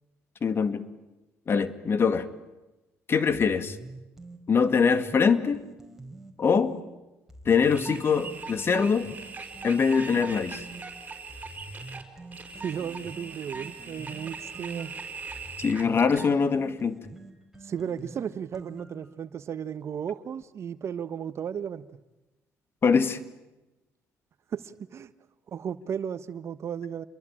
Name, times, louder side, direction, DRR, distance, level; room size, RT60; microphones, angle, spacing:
voice 1, 0.4-0.8 1.5-2.3 3.1-3.8 4.5-5.6 6.4-6.7 7.5-9.1 9.6-10.7 15.6-17.0 22.8-23.2, left 5 dB, 45° left, 2.1 m, -23 dB
sound 1, 3.3-6.8 7.3-10.8 11.3-19.1, right 2 dB, 5° right, 4.7 m, -46 dB
sound 2, 7.6-16.3, right 4 dB, 25° right, 5.1 m, -41 dB
voice 2, 12.5-14.9 17.6-21.9 24.5-25.1 25.5-27.1, right 8 dB, 55° right, 1.2 m, -34 dB
28.5 x 22.5 x 9.0 m
supercardioid pair, 70°, 6 cm